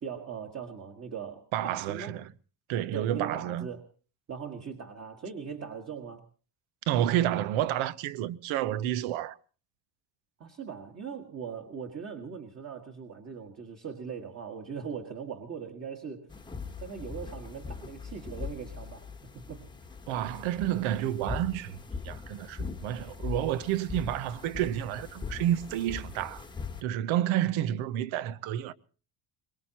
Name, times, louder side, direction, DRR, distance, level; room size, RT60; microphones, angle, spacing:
voice 1, 0.0-2.2 2.9-3.8 4.3-6.3 10.4-16.3 16.8-19.1 19.3-19.7, right 6 dB, 30° right, 1.7 m, -40 dB
voice 2, 1.5-2.3 2.7-3.7 6.9-9.4 20.1-21.8 22.0-26.4 26.8-28.7, right 12 dB, 75° right, 1.0 m, -30 dB
sound 1, 16.3-26.8, left 5 dB, 10° left, 1.1 m, -41 dB
23.5 x 21.0 x 2.9 m
cardioid pair, 150°, 48 cm